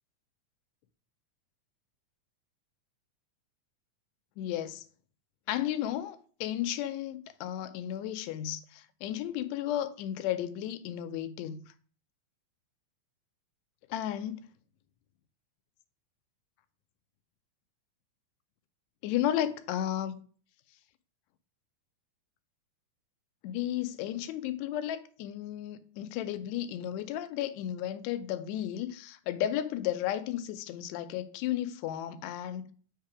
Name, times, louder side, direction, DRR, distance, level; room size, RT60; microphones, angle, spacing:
voice 1, 4.4-4.8 5.5-11.6 13.9-14.4 19.0-20.2 23.4-32.7, left 11 dB, 80° left, 1.7 m, -33 dB
7.4 x 3.2 x 4.8 m
omnidirectional pair, 3.4 m